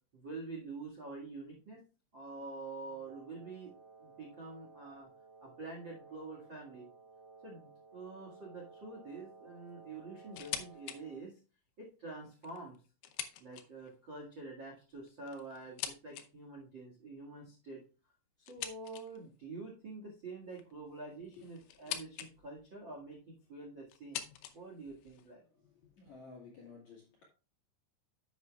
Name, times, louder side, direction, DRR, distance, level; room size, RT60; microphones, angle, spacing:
voice 1, 0.1-1.8 2.1-3.7 4.0-5.1 5.4-6.9 7.4-11.3 11.8-12.7 13.4-17.8 18.4-24.2 24.5-25.4, right 3 dB, 90° right, -1 dB, 1.0 m, -47 dB
Wind instrument woodwind instrument, 3.0-11.3, right 4 dB, 45° right, 2.9 m, -57 dB
sound 1, 10.3-11.0 11.4-11.5 12.3-14.0 14.9-16.3 18.5-19.3 20.5-22.3 22.6-23.2 23.9-25.3, left 11 dB, 85° left, 2.3 m, -44 dB
voice 2, 25.5-27.2, left 4 dB, 60° left, -2 dB, 1.9 m, -54 dB
10.5 x 8.5 x 2.3 m, 0.34 s
omnidirectional pair, 5.8 m